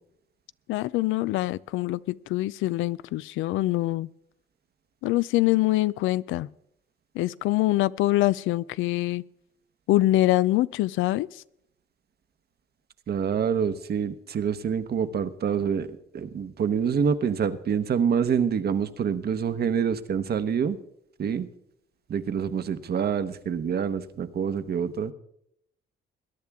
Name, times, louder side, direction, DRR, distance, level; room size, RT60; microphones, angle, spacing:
voice 1, 0.7-4.1 5.0-6.5 7.2-9.2 9.9-11.3, left 16 dB, 85° left, 18 dB, 0.4 m, -24 dB
voice 2, 13.1-15.9 16.1-20.8 21.2-21.5 22.1-25.1, right 7 dB, 55° right, 11 dB, 1.0 m, -26 dB
21.5 x 10.5 x 3.6 m, 0.74 s
cardioid pair, 90°, 20 cm